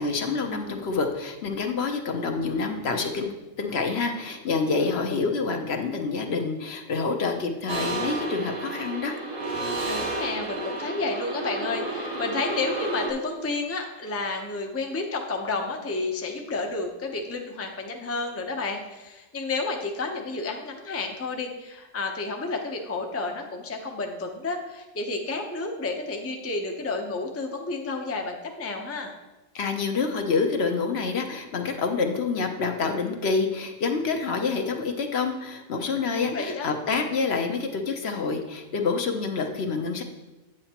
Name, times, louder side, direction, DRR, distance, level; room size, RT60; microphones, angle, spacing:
voice 1, 0.0-9.1 29.5-40.0, left 4 dB, 60° left, 4 dB, 1.0 m, -27 dB
voice 2, 4.8-5.2 9.8-29.1 36.1-36.7, left 3 dB, 15° left, 2 dB, 0.5 m, -31 dB
sound 1, 7.7-13.1, right 2 dB, 75° right, 1.8 m, -31 dB
8.9 x 7.8 x 2.9 m, 1.1 s
omnidirectional pair, 1.3 m